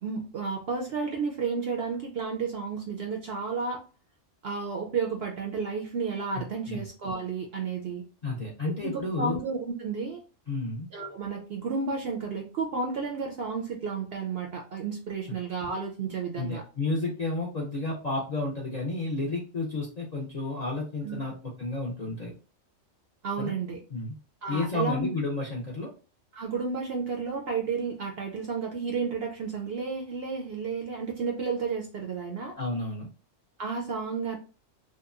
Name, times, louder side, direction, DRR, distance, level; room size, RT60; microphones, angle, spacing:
voice 1, 0.0-3.8 4.4-8.0 8.6-10.2 10.9-16.6 21.0-21.2 23.2-23.8 24.4-25.1 26.3-32.5 33.6-34.4, right 5 dB, 65° right, 1 dB, 0.6 m, -32 dB
voice 2, 6.4-6.9 8.2-9.4 10.5-10.9 16.4-22.3 23.4-23.5 23.9-24.2 24.5-25.9 32.6-33.1, left 2 dB, 50° left, -3 dB, 0.5 m, -31 dB
2.9 x 2.1 x 2.3 m, 0.35 s
omnidirectional pair, 1.4 m